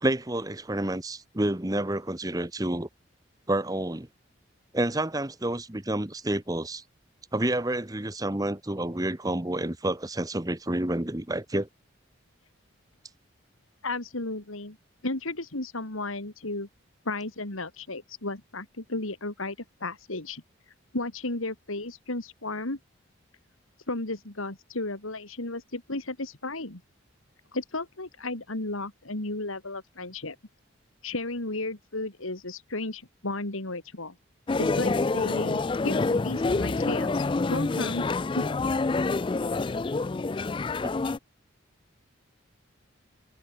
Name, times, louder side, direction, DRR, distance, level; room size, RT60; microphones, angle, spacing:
voice 1, 0.0-2.9 3.5-4.1 4.7-6.8 7.3-11.7, right 1 dB, 15° right, 1.0 m, -29 dB
voice 2, 13.8-14.8 15.0-16.7 17.0-20.4 20.9-22.8 23.9-26.8 27.5-30.4 31.0-34.1 34.6-38.4, left 2 dB, 90° left, 3.1 m, -34 dB
sound 1, 34.5-41.2, left 3 dB, 25° left, 0.3 m, -27 dB
head